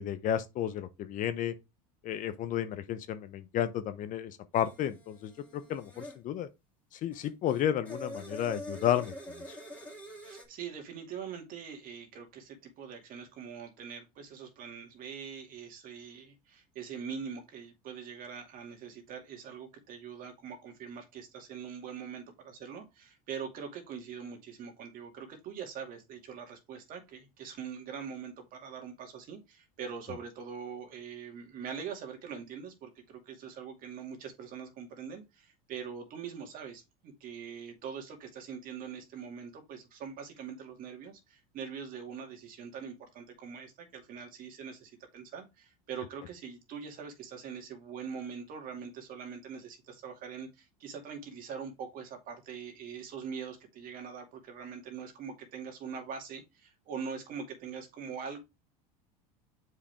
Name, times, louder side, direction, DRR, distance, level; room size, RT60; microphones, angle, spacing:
voice 1, 0.0-1.5 2.0-6.5 7.0-9.1, left 10 dB, 45° left, 0.8 m, -32 dB
sound 1, 4.5-6.2 7.1-10.4, equal, 5° left, 2.4 m, -45 dB
voice 2, 10.2-58.4, right 6 dB, 45° right, 2.3 m, -43 dB
7.1 x 5.0 x 3.5 m
supercardioid pair, 115°, 19 cm